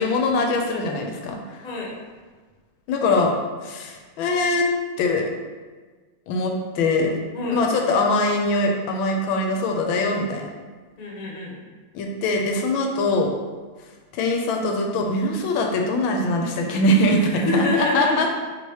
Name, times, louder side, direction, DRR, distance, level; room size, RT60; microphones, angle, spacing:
voice 1, 0.0-1.6 2.9-3.3 3.6-4.7 5.0-5.3 6.3-7.2 7.5-10.5 11.9-13.3 14.1-18.4, left 2 dB, 80° left, 1 dB, 1.3 m, -22 dB
voice 2, 1.6-1.9 7.3-7.6 11.0-11.6 17.1-18.2, left 3 dB, 55° left, -3 dB, 1.2 m, -26 dB
3.3 x 2.8 x 4.6 m, 1.4 s
omnidirectional pair, 2.2 m